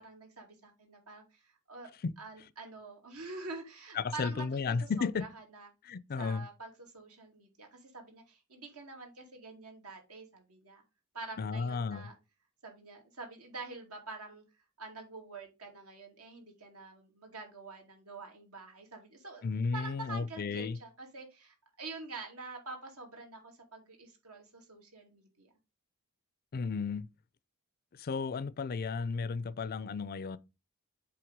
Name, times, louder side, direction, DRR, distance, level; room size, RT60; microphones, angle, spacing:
voice 1, 0.0-1.9 2.2-5.7 6.2-10.8 11.1-12.2 12.6-14.4 14.8-19.5 19.7-25.5, right 3 dB, 80° right, 2.6 m, -46 dB
voice 2, 4.0-5.3 5.9-6.5 11.4-12.1 19.4-20.8 26.5-27.1 28.0-30.4, left 4 dB, 45° left, 0.4 m, -33 dB
7.7 x 3.4 x 5.1 m
head